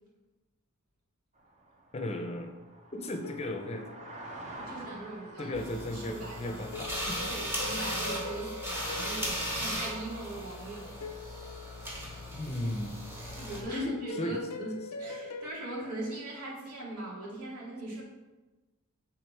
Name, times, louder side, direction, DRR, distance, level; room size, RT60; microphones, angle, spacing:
sound 1, 1.4-7.3, right 2 dB, 30° right, 0.8 m, -48 dB
voice 1, 1.9-2.5 2.9-3.9 5.4-7.3 12.3-13.0 13.7-14.4, left 1 dB, 30° left, 4 dB, 0.6 m, -35 dB
sound 2, 3.2-4.8 6.7-10.4 11.0-12.5 13.7-15.5, left 4 dB, 85° left, 0.6 m, -44 dB
voice 2, 4.6-5.5 5.9-6.6 7.3-11.0 13.3-18.0, right 2 dB, 85° right, -5 dB, 2.3 m, -40 dB
sound 3, 5.5-13.6, equal, 10° right, 1.1 m, -37 dB
7.0 x 3.7 x 4.6 m, 1.2 s
head